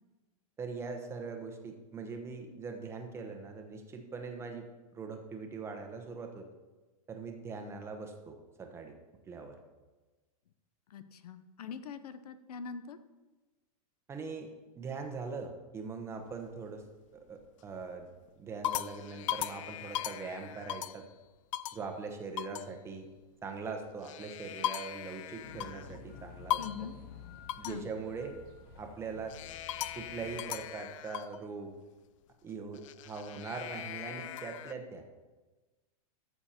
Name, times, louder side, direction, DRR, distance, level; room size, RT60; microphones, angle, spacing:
voice 1, 0.6-4.7 4.9-6.5 7.1-9.0 9.3-9.6 14.1-14.5 14.8-16.8 17.1-18.1 18.4-21.0 21.7-23.1 23.4-26.9 27.6-28.4 28.8-29.3 29.9-31.7 32.4-35.0, right 4 dB, 15° right, 4 dB, 1.1 m, -41 dB
voice 2, 10.9-13.0 26.6-26.9 27.6-27.9, left 6 dB, 85° left, 12 dB, 0.9 m, -43 dB
sound 1, 16.2-16.9 17.4-17.8 18.3-21.1 21.5-21.9 22.4-22.7 23.9-26.0 26.5-26.9 27.5-27.8 29.3-31.4 32.7-34.7, left 12 dB, 60° left, 0.5 m, -38 dB
sound 2, 25.4-30.4, left 6 dB, 40° left, 1.5 m, -51 dB
14.0 x 6.9 x 4.4 m, 1.2 s
supercardioid pair, 155°, 19 cm